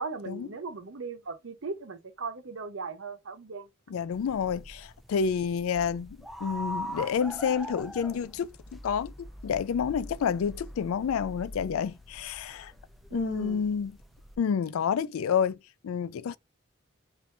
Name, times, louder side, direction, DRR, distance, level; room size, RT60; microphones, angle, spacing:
voice 1, 0.0-3.7 13.1-13.6, right 4 dB, 65° right, 0.8 m, -38 dB
voice 2, 3.9-12.7 13.1-13.9 14.4-15.6 15.8-16.4, left 7 dB, 85° left, 0.3 m, -29 dB
sound 1, 4.1-14.4, equal, ahead, 0.3 m, -43 dB
4.4 x 2.6 x 3.2 m
head